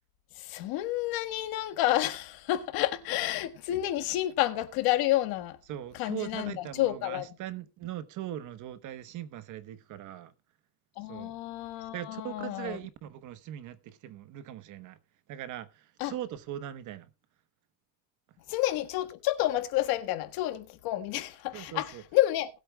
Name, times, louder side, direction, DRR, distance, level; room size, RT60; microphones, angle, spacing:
voice 1, 0.4-5.6 6.0-7.3 11.0-12.8 16.0-16.1 18.5-22.5, left 15 dB, 70° left, 1.6 m, -30 dB
voice 2, 5.7-10.3 11.0-11.4 11.9-15.0 15.3-17.1 21.5-22.0, right 12 dB, 50° right, 1.1 m, -40 dB
19.5 x 8.3 x 2.2 m
cardioid pair, 150°, 38 cm